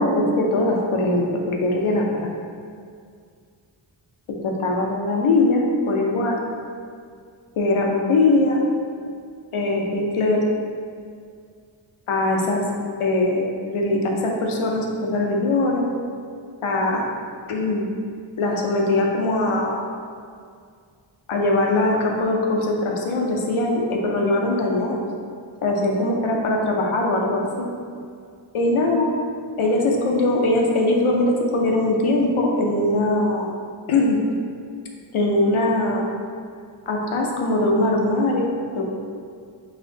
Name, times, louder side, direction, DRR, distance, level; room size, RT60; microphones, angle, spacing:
voice 1, 0.0-2.3 4.4-6.4 7.6-8.6 9.5-10.4 12.1-12.6 13.0-15.9 16.6-17.0 17.5-17.9 18.4-19.8 21.3-25.1 25.6-27.7 28.5-29.1 29.6-33.5 33.9-34.2 35.1-36.1 36.9-38.8, left 2 dB, 85° left, 0 dB, 0.7 m, -21 dB
4.2 x 2.6 x 3.8 m, 2.2 s
cardioid pair, 50°, 48 cm